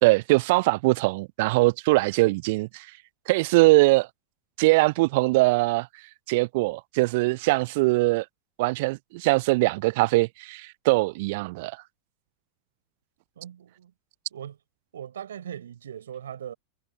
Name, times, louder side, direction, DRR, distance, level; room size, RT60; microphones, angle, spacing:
voice 1, 0.0-2.9 3.3-4.1 4.6-5.9 6.3-8.3 8.6-11.8, right 23 dB, 50° right, 0.4 m, -22 dB
voice 2, 13.4-13.9 14.3-14.6 14.9-16.5, right 9 dB, 65° right, 6.1 m, -39 dB
figure-of-eight pair, 90°, 0 cm